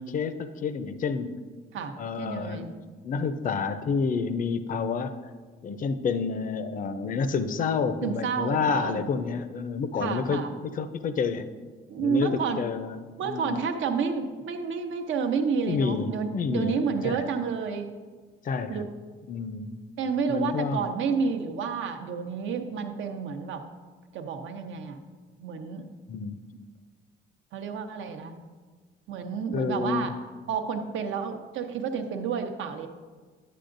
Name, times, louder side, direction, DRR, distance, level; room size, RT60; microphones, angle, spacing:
voice 1, 0.0-1.4 2.0-2.8 3.0-5.2 5.6-11.5 12.0-13.6 15.7-16.8 17.0-17.2 18.4-18.9 19.3-19.8 20.3-20.8 26.1-26.4 29.5-30.1, left 5 dB, 45° left, 11 dB, 0.5 m, -29 dB
voice 2, 2.2-2.7 8.0-9.2 10.0-10.5 11.9-12.6 13.2-17.9 18.7-18.9 20.0-23.6 24.1-25.0 25.4-25.9 27.5-28.4 29.1-30.1 30.5-32.9, right 6 dB, 75° right, 6 dB, 0.8 m, -30 dB
10.0 x 7.7 x 2.6 m, 1.4 s
cardioid pair, 90°, 20 cm